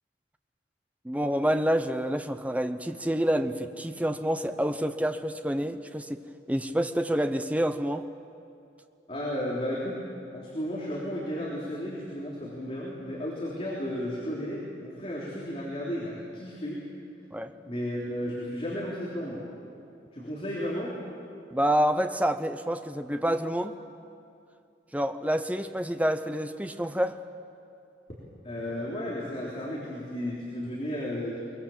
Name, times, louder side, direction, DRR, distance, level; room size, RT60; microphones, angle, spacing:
voice 1, 1.0-6.2 6.5-8.0 17.3-17.5 21.5-23.7 24.9-27.2, equal, 10° right, 8 dB, 0.7 m, -28 dB
voice 2, 9.1-10.0 10.3-16.8 17.7-19.4 20.1-20.9 28.4-31.4, equal, 35° left, -5 dB, 3.5 m, -33 dB
23.5 x 21.5 x 7.3 m, 2.6 s
head